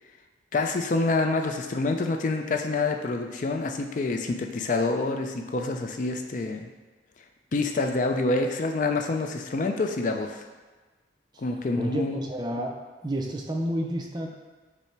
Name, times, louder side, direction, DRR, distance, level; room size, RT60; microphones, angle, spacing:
voice 1, 0.5-6.7 7.5-10.4 11.4-12.2, left 3 dB, 45° left, 4 dB, 0.4 m, -27 dB
voice 2, 11.7-12.7 13.0-14.3, equal, 25° right, 1 dB, 0.4 m, -30 dB
5.5 x 2.1 x 4.5 m, 1.3 s
head